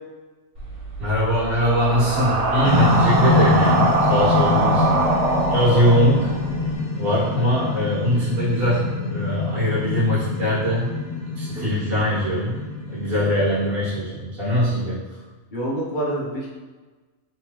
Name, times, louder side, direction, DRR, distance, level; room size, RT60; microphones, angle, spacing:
sound 1, 0.6-6.7, right 2 dB, 70° right, 1.3 m, -23 dB
voice 1, 1.0-5.0 5.5-6.3 6.9-11.0 11.4-12.6 12.9-15.0, equal, 40° right, -9 dB, 1.7 m, -21 dB
sound 2, 2.6-14.1, left 3 dB, 85° left, 1.2 m, -25 dB
voice 2, 11.6-12.0 14.7-14.8 15.5-16.5, right 1 dB, 50° left, -5 dB, 0.6 m, -29 dB
3.5 x 3.2 x 2.9 m, 1.3 s
omnidirectional pair, 1.5 m